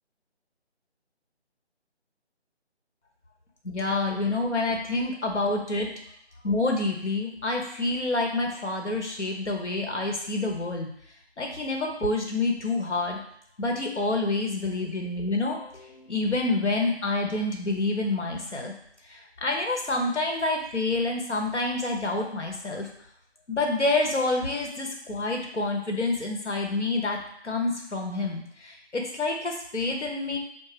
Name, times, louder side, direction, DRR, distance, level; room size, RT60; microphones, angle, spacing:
voice 1, 3.6-5.9 6.4-10.9 11.4-13.2 13.6-18.7 19.0-22.9 23.5-27.2 27.4-30.4, left 2 dB, 85° left, 1 dB, 1.1 m, -28 dB
5.2 x 2.1 x 3.3 m, 0.70 s
figure-of-eight pair, 160°, 34 cm